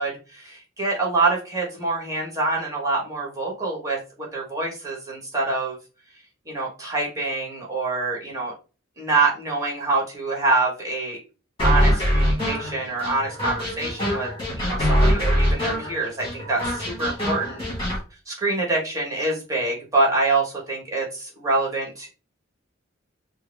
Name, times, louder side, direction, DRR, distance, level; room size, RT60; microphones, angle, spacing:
voice 1, 0.0-5.8 6.5-8.5 9.0-11.2 11.6-14.3 14.6-17.6 18.3-22.1, right 3 dB, 15° right, -3 dB, 1.4 m, -25 dB
sound 1, 11.6-18.0, equal, 25° left, 1.9 m, -23 dB
4.6 x 2.1 x 3.5 m, 0.33 s
head